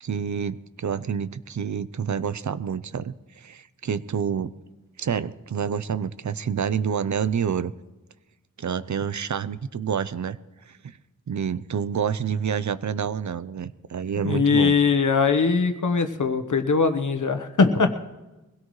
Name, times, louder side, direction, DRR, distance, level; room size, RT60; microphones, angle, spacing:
voice 1, 0.0-4.5 5.0-7.7 8.6-10.4 10.7-11.0 11.3-14.7, right 7 dB, 65° right, 15 dB, 0.6 m, -28 dB
voice 2, 14.2-18.1, left 5 dB, 70° left, 8 dB, 1.1 m, -21 dB
23.0 x 17.0 x 3.2 m, 1.1 s
wide cardioid pair, 80°, 31 cm